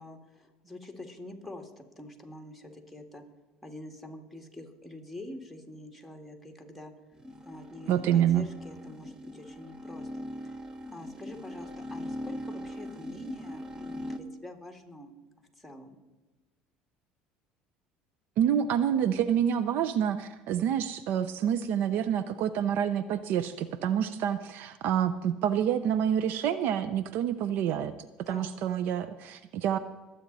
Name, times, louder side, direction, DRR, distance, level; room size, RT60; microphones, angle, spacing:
voice 1, 0.0-3.2 3.6-6.9 7.4-10.1 10.4-10.6 10.9-15.1 15.6-16.0 28.3-28.6, left 1 dB, ahead, 2 dB, 2.3 m, -45 dB
sound 1, 7.1-14.2, left 1 dB, 20° right, 1.2 m, -41 dB
voice 2, 7.9-8.5 18.4-27.9 28.2-29.8, right 9 dB, 65° right, 13 dB, 0.6 m, -27 dB
22.0 x 8.6 x 4.1 m, 1.2 s
supercardioid pair, 90°, 4 cm